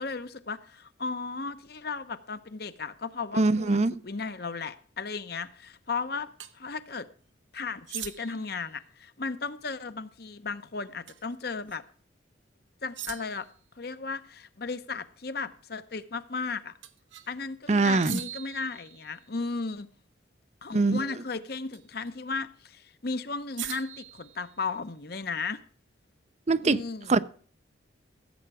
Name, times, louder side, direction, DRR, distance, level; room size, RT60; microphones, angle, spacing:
voice 1, 0.0-6.3 6.5-7.1 7.5-11.8 12.8-13.5 13.8-16.7 17.3-19.9 20.6-25.6 26.6-27.2, left 4 dB, 55° left, 0.8 m, -35 dB
voice 2, 3.4-4.0 17.7-18.2 20.7-21.0 26.5-26.8 27.1-27.2, right 3 dB, 35° right, 0.5 m, -23 dB
sound 1, 6.4-6.5 7.9-8.5 11.1-11.3 11.7-11.8 12.9-13.5 16.8-17.3 18.0-19.4 21.7-22.1 23.6-24.9, right 13 dB, 80° right, 1.1 m, -41 dB
15.5 x 7.9 x 4.8 m
head